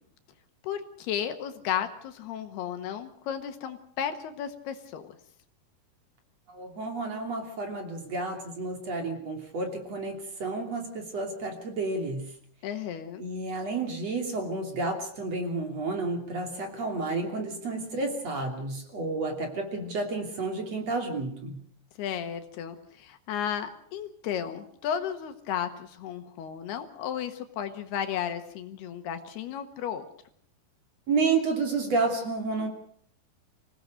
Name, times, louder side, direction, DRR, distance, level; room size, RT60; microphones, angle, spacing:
voice 1, 0.6-5.2 12.6-13.2 22.0-30.1, left 9 dB, 75° left, 8 dB, 3.4 m, -34 dB
voice 2, 6.5-12.3 13.2-21.6 31.1-32.7, right 3 dB, 40° right, 3 dB, 3.8 m, -31 dB
26.0 x 17.5 x 6.5 m, 0.62 s
omnidirectional pair, 4.8 m